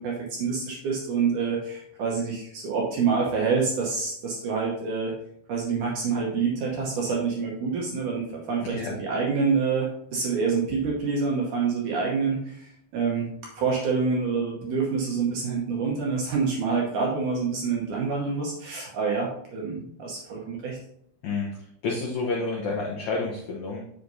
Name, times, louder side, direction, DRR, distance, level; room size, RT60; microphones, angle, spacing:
voice 1, 0.0-5.1 5.5-13.3 13.6-20.8, right 5 dB, 70° right, -2 dB, 2.0 m, -27 dB
voice 2, 8.6-8.9 21.2-21.5 21.8-23.8, left 3 dB, 90° left, -2 dB, 1.6 m, -29 dB
7.6 x 6.6 x 2.7 m, 0.70 s
omnidirectional pair, 4.8 m